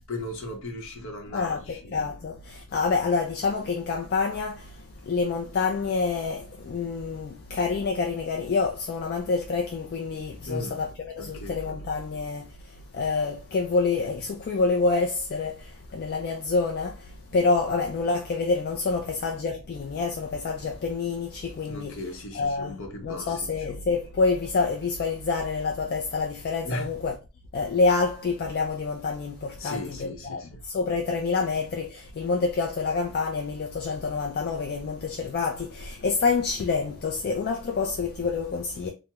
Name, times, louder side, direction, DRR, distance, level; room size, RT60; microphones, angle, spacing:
voice 1, 0.1-2.1 10.5-10.8 11.2-11.7 21.6-23.7 26.6-26.9 29.6-30.6, left 1 dB, 60° left, 0.8 m, -37 dB
voice 2, 1.3-22.0 22.3-27.2 27.5-38.9, left 4 dB, 45° left, 0.3 m, -27 dB
3.3 x 2.0 x 2.8 m
head